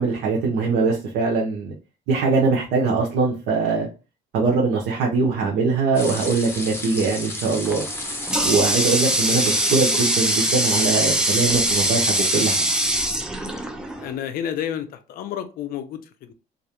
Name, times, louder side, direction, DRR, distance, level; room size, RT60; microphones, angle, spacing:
voice 1, 0.0-1.7 2.1-3.9 4.3-7.8 8.4-12.7, right 4 dB, 85° right, -2 dB, 0.7 m, -22 dB
sound 1, 5.9-12.6, left 2 dB, 15° left, 1.0 m, -32 dB
Water tap faucet, 7.6-14.1, right 1 dB, 5° right, 0.4 m, -22 dB
voice 2, 14.0-16.0 16.3-16.4, left 9 dB, 60° left, 9 dB, 0.4 m, -30 dB
2.4 x 2.1 x 2.8 m, 0.32 s
cardioid pair, 110°, 17 cm